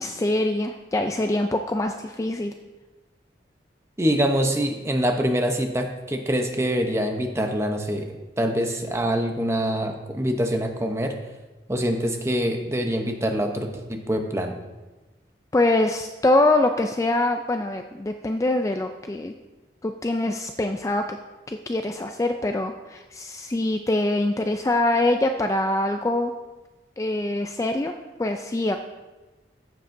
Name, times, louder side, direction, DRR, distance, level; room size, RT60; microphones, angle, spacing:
voice 1, 0.0-2.5 15.5-19.3 19.8-21.2 21.5-26.3 27.0-27.9 28.2-28.8, left 2 dB, 15° left, 5 dB, 0.3 m, -24 dB
voice 2, 4.0-11.2 11.7-14.6, equal, 15° right, 4 dB, 0.7 m, -25 dB
14.5 x 7.7 x 2.6 m, 1.2 s
head